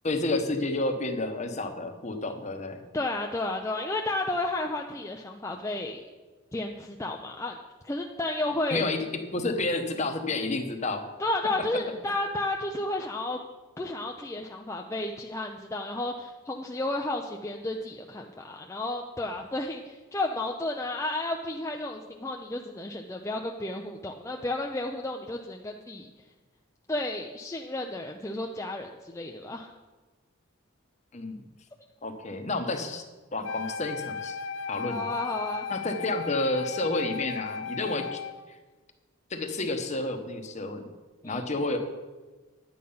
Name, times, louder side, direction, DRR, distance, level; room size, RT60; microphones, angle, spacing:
voice 1, 0.0-2.8 8.7-9.0 9.3-11.1 31.1-31.4 32.0-33.0 33.3-34.4 34.7-35.1 35.7-38.2 38.5-38.6 39.3-40.9 41.2-41.8, left 2 dB, 35° left, 6 dB, 1.0 m, -30 dB
voice 2, 2.9-6.0 6.5-8.8 11.2-13.4 13.8-26.1 26.9-29.7 34.9-35.7 37.8-37.9 41.2-41.4, left 2 dB, 15° left, 1 dB, 0.5 m, -32 dB
Wind instrument woodwind instrument, 33.4-38.5, left 5 dB, 65° left, 0.5 m, -36 dB
10.5 x 8.6 x 5.5 m, 1.3 s
head